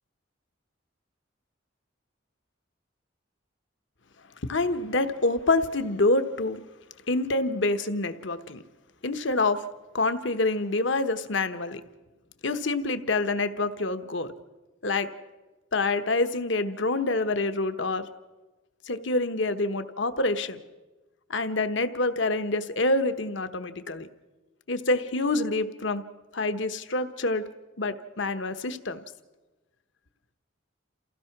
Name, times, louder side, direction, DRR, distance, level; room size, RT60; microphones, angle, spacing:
voice 1, 4.5-6.6 7.1-8.6 9.0-9.6 9.9-11.8 12.4-14.3 14.8-15.1 15.7-18.1 18.9-20.6 21.3-24.1 24.7-26.0 26.3-27.4 27.8-29.0, left 2 dB, 65° left, 10 dB, 1.1 m, -26 dB
28.0 x 16.0 x 6.0 m, 1.2 s
head